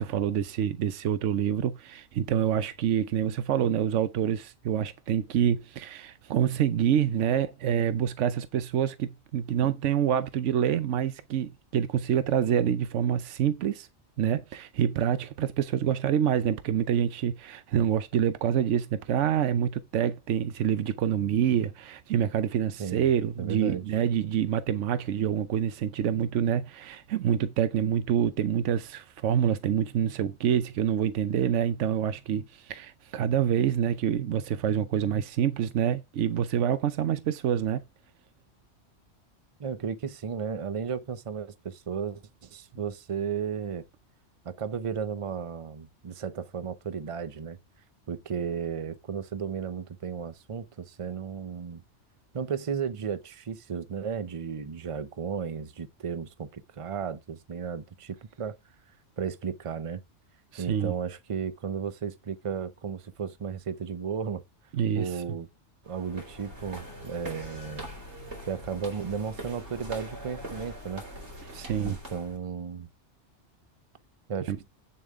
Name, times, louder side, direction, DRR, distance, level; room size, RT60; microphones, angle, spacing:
voice 1, 0.0-13.9 14.2-37.8 60.5-60.9 64.7-65.2 71.5-72.0 74.5-74.6, right 9 dB, 80° right, 1.0 m, -27 dB
voice 2, 22.8-23.1 23.4-23.8 39.6-43.8 44.4-47.6 48.1-51.8 52.3-58.6 59.2-60.0 60.6-64.4 64.9-65.5 65.9-67.9 68.5-71.0 71.8-72.9 74.3-74.5, right 6 dB, 35° right, 0.6 m, -34 dB
sound 1, 65.8-72.4, right 1 dB, 65° right, 3.9 m, -42 dB
8.8 x 7.0 x 3.6 m
omnidirectional pair, 1.2 m